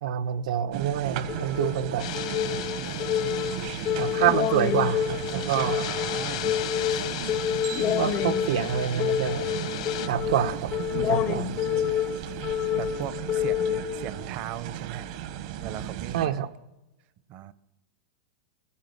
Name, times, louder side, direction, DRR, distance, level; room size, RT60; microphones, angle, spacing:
voice 1, 0.0-2.0 3.9-5.9 8.0-9.5 10.1-11.5 16.1-16.5, right 10 dB, 75° right, 9 dB, 1.2 m, -27 dB
sound 1, 0.7-16.3, right 10 dB, 55° right, 1.4 m, -36 dB
sound 2, 1.3-14.3, left 10 dB, 30° left, 0.7 m, -29 dB
sound 3, 2.0-10.1, left 14 dB, 65° left, 1.2 m, -37 dB
voice 2, 5.7-6.5 11.2-12.0 12.8-15.1 15.6-16.4 17.3-17.5, right 11 dB, 40° right, 16 dB, 0.9 m, -38 dB
23.5 x 16.0 x 7.9 m, 1.0 s
supercardioid pair, 155°, 4 cm